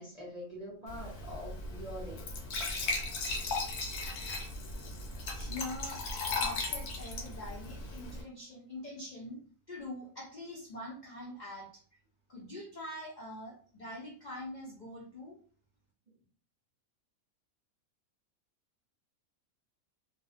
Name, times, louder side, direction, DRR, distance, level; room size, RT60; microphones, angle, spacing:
voice 1, 0.0-2.3 16.1-16.2, equal, 45° right, -6 dB, 0.5 m, -44 dB
Glass / Trickle dribble / Fill (with liquid), 0.9-8.2, left 3 dB, 85° left, 1.1 m, -37 dB
voice 2, 5.3-9.4 9.7-11.7 12.3-15.4, left 1 dB, 70° left, -4 dB, 0.4 m, -44 dB
2.5 x 2.0 x 2.4 m, 0.43 s
omnidirectional pair, 1.5 m